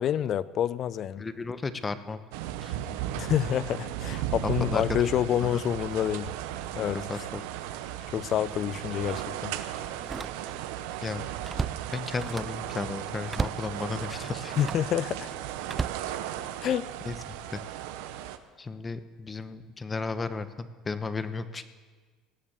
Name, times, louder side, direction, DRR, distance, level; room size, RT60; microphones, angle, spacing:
voice 1, 0.0-1.2 3.2-6.3 6.8-7.0 8.1-9.5 14.6-15.3 16.6-16.9, left 10 dB, 50° left, 18 dB, 0.6 m, -28 dB
voice 2, 1.2-2.2 2.6-2.7 4.4-5.1 5.4-5.6 6.8-7.4 11.0-11.3 11.9-14.5 17.0-17.2 17.5-17.6 18.6-21.6, left 4 dB, 25° left, 12 dB, 1.0 m, -34 dB
sound 1, 2.3-18.4, right 12 dB, 80° right, 0.8 m, -36 dB
Slam, 8.5-8.6 9.9-10.8 11.1-12.7 13.3-13.7 14.5-14.9 15.6-16.7 17.3-17.6, right 4 dB, 25° right, 0.4 m, -35 dB
18.0 x 7.4 x 8.3 m, 1.5 s
supercardioid pair, 85°, 0 cm